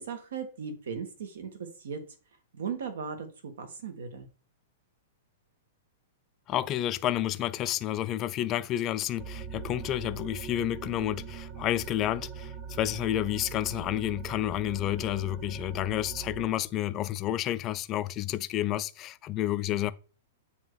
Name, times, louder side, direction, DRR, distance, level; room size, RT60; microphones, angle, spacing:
voice 1, 0.0-2.0 2.5-4.3, right 6 dB, 80° right, 1.5 m, -37 dB
voice 2, 6.5-19.9, left 13 dB, 25° left, 0.3 m, -30 dB
sound 1, 9.2-16.5, right 6 dB, 25° right, 0.6 m, -41 dB
7.3 x 2.8 x 4.7 m
supercardioid pair, 165°, 0 cm